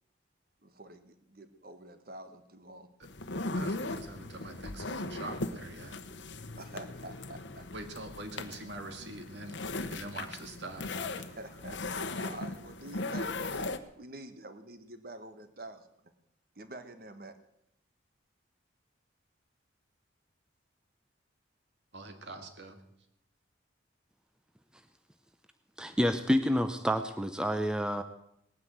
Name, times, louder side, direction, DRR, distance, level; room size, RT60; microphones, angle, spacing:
voice 1, 0.6-2.9 6.6-7.7 11.1-13.7 14.0-15.9 16.5-17.4, right 2 dB, 50° right, 9 dB, 1.5 m, -47 dB
sound 1, 3.0-13.8, left 2 dB, 70° left, 1.0 m, -38 dB
voice 2, 3.5-6.0 7.7-11.1 21.9-22.8, right 2 dB, 65° right, 6 dB, 2.0 m, -44 dB
voice 3, 25.8-28.0, equal, 5° right, 8 dB, 0.6 m, -28 dB
19.0 x 9.6 x 7.9 m, 0.76 s
head